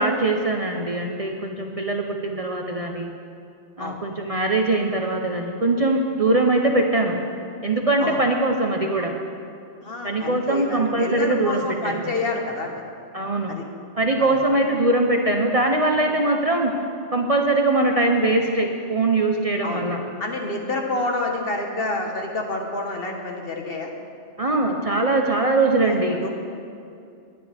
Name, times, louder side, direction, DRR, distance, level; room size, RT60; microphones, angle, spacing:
voice 1, 0.0-3.1 3.8-7.2 7.6-9.1 10.0-12.0 13.1-13.5 14.0-16.7 17.1-20.0 24.4-26.3, right 2 dB, 35° right, 2 dB, 0.8 m, -22 dB
voice 2, 9.8-12.8 13.5-13.6 14.2-14.4 19.6-19.8 20.2-23.9 25.8-26.3, left 2 dB, 55° left, 1 dB, 1.5 m, -28 dB
20.0 x 9.8 x 3.5 m, 2.4 s
omnidirectional pair, 1.2 m